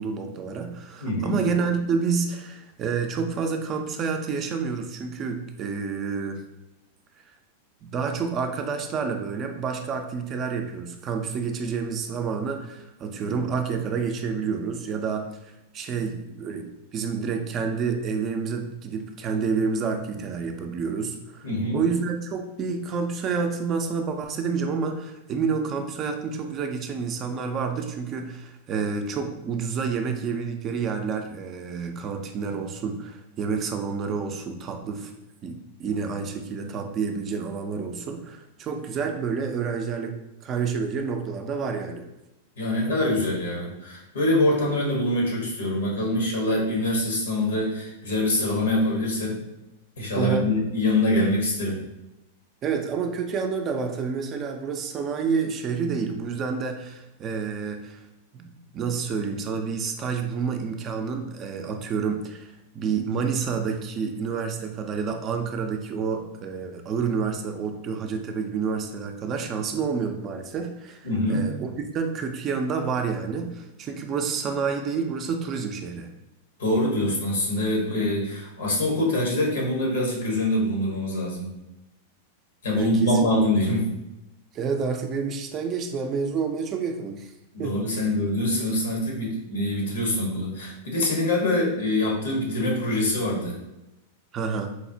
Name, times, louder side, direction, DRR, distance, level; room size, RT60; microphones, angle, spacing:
voice 1, 0.0-6.4 7.8-15.3 15.7-21.5 21.7-35.1 35.4-40.1 40.4-42.1 50.2-50.5 52.6-58.0 58.3-71.7 71.9-76.1 82.7-83.1 84.5-87.3 87.6-87.8 94.3-94.7, right 5 dB, 35° right, 5 dB, 0.4 m, -29 dB
voice 2, 1.0-1.4 21.4-21.8 42.6-49.4 50.0-51.8 71.0-71.5 76.6-81.5 82.6-83.9 87.5-93.6, left 1 dB, 90° left, -2 dB, 1.1 m, -24 dB
4.1 x 2.0 x 2.6 m, 0.94 s
hypercardioid pair, 120°, 0 cm